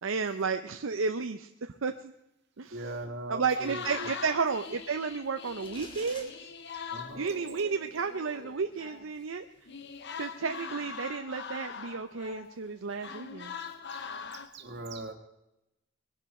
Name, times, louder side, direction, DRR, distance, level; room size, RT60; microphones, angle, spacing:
voice 1, 0.0-2.1 2.6-2.8 3.3-6.5 7.1-9.4 10.2-13.5, right 5 dB, 75° right, 7 dB, 0.6 m, -32 dB
voice 2, 2.7-4.1 6.9-7.2 13.6-14.0 14.3-15.1, right 2 dB, 60° right, 4 dB, 1.9 m, -40 dB
sound 1, 3.5-9.1 9.7-12.7 13.0-14.5, left 6 dB, 60° left, 1.0 m, -42 dB
sound 2, 5.6-6.3, left 1 dB, 25° left, 3.1 m, -46 dB
21.5 x 11.5 x 4.3 m, 0.89 s
head